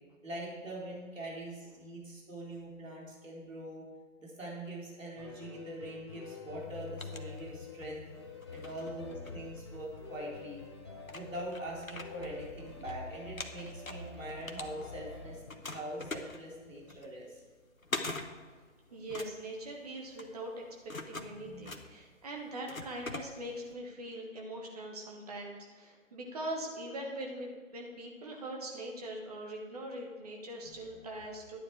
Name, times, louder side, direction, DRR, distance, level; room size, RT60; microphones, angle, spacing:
voice 1, 0.2-3.8 4.2-8.0 8.5-10.6 11.1-15.4 15.7-17.4 21.2-21.7 30.6-30.8, right 1 dB, 70° right, -4 dB, 4.1 m, -43 dB
sound 1, 5.2-15.4, left 4 dB, 20° left, 0.7 m, -47 dB
sound 2, 6.6-7.9 8.4-10.1 10.7-10.8 11.0-12.9 13.2-15.1 15.5-23.7, left 2 dB, 90° left, 1.1 m, -43 dB
voice 2, 18.9-20.6 21.1-31.6, right 1 dB, 30° right, 0 dB, 1.4 m, -42 dB
11.5 x 9.2 x 4.8 m, 1.4 s
figure-of-eight pair, 145°, 40 cm